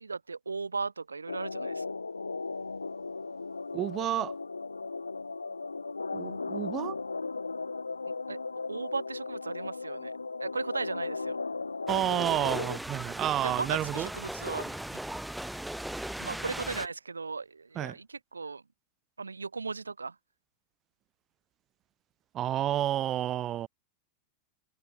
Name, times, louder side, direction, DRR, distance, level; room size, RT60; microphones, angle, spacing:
voice 1, 0.0-1.8 8.3-8.4 8.7-10.1 10.4-11.4 13.4-14.8 16.2-18.6 19.2-20.1, right 4 dB, 75° right, 0.8 m, -36 dB
sound 1, 1.3-12.8, left 3 dB, 80° left, 0.6 m, -36 dB
voice 2, 3.7-4.3 6.1-7.0 11.9-14.1 17.7-18.0 22.3-23.7, right 12 dB, 30° right, 1.2 m, -30 dB
sound 2, 11.9-16.9, right 1 dB, 5° right, 0.4 m, -38 dB
figure-of-eight pair, 90°, 0 cm